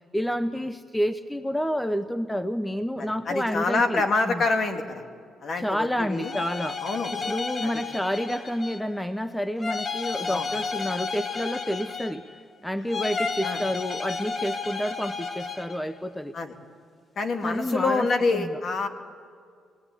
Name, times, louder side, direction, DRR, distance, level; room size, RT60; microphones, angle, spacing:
voice 1, 0.1-4.4 5.6-6.8 7.2-12.2 12.6-16.3 17.4-18.5, equal, 5° left, 12 dB, 0.8 m, -29 dB
voice 2, 3.0-5.0 5.4-6.3 6.8-7.1 7.6-7.8 10.3-10.5 13.4-13.6 16.3-16.5 17.2-18.9, left 3 dB, 50° left, 6 dB, 2.3 m, -26 dB
sound 1, 6.1-9.0 9.6-12.4 12.9-15.8, left 5 dB, 35° left, 1.3 m, -32 dB
23.5 x 19.5 x 9.8 m, 2.2 s
cardioid pair, 90°, 0 cm